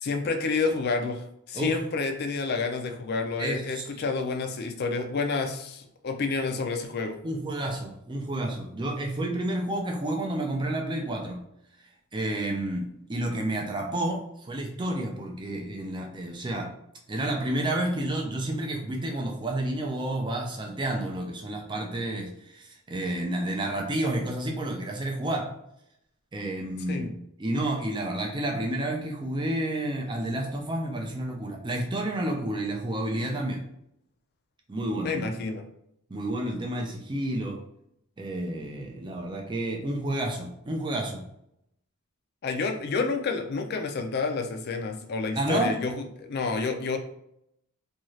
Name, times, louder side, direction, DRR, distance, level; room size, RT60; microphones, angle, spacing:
voice 1, 0.0-7.2 26.9-27.1 35.0-35.6 42.4-47.0, left 4 dB, 45° left, 5 dB, 0.4 m, -29 dB
voice 2, 3.4-3.8 7.2-11.4 12.1-16.7 17.1-25.5 26.3-27.1 27.4-33.6 34.7-35.4 36.1-37.6 38.2-41.2 45.4-45.7, right 1 dB, 20° right, 1 dB, 0.4 m, -30 dB
2.6 x 2.3 x 3.1 m, 0.75 s
head